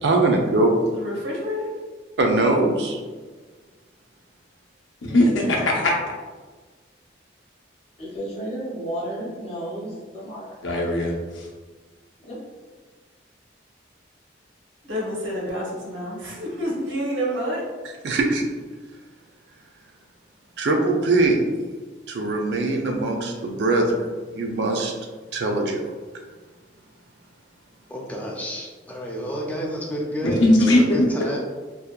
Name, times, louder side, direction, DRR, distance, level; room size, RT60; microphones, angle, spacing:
voice 1, 0.0-0.9 2.2-3.0 18.0-18.5 20.6-21.4 22.1-24.9 25.3-25.9, right 2 dB, 65° right, 2 dB, 0.4 m, -21 dB
voice 2, 0.9-1.7 14.8-17.6, equal, 85° right, -4 dB, 0.8 m, -28 dB
voice 3, 5.0-5.9 10.6-11.5 30.2-31.1, left 1 dB, 85° left, -1 dB, 0.6 m, -19 dB
voice 4, 8.0-11.0 12.3-12.4, right 1 dB, 35° left, -5 dB, 0.7 m, -33 dB
voice 5, 27.9-31.4, equal, 10° left, -2 dB, 0.3 m, -30 dB
2.7 x 2.1 x 2.2 m, 1.4 s
head